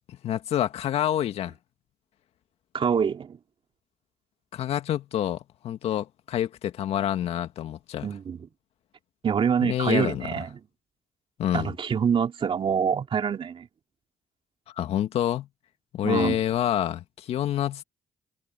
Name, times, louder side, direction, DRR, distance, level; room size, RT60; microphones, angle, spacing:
voice 1, 0.1-1.5 4.5-8.1 9.6-10.3 11.4-11.7 14.8-15.5 15.9-17.8, left 11 dB, 75° left, 2.2 m, -27 dB
voice 2, 2.7-3.4 8.0-8.5 9.2-10.6 11.5-13.7 16.0-16.4, right 7 dB, 55° right, 2.9 m, -25 dB
supercardioid pair, 50°, 11 cm